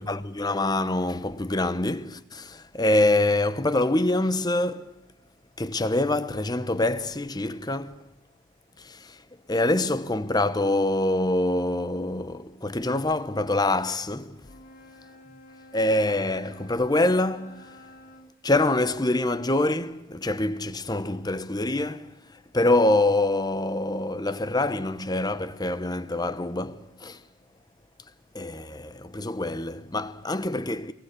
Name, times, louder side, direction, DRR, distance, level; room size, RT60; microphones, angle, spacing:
voice 1, 0.0-4.9 5.6-8.0 8.8-9.2 9.5-14.5 15.7-17.7 18.4-27.2 28.3-30.9, left 2 dB, 15° left, 0.9 m, -25 dB
Wind instrument woodwind instrument, 14.4-18.3, left 1 dB, 40° left, 2.1 m, -50 dB
23.0 x 20.0 x 8.4 m
head